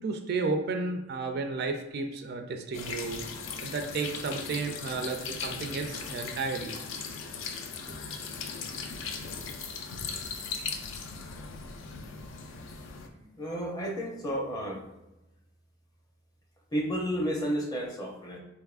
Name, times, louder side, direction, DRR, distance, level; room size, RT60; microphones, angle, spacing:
voice 1, 0.0-3.2 3.6-6.8 7.9-8.0, right 4 dB, 50° right, 4 dB, 0.4 m, -32 dB
sound 1, 2.7-13.1, left 5 dB, 65° left, 0.4 m, -38 dB
voice 2, 13.2-14.8 16.7-18.4, equal, 20° left, 0 dB, 0.6 m, -32 dB
4.0 x 3.4 x 2.4 m, 0.97 s
head